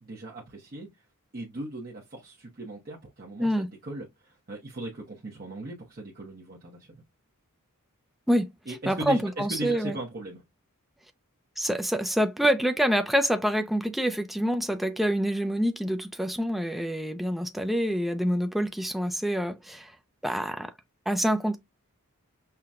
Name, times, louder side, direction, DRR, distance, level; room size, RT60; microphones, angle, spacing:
voice 1, 0.0-1.1 1.3-7.0 8.7-10.4, right 1 dB, 40° right, 0.8 m, -38 dB
voice 2, 8.9-10.0 11.6-19.9 20.2-20.7 21.1-21.6, equal, ahead, 0.4 m, -26 dB
5.7 x 2.1 x 2.4 m
head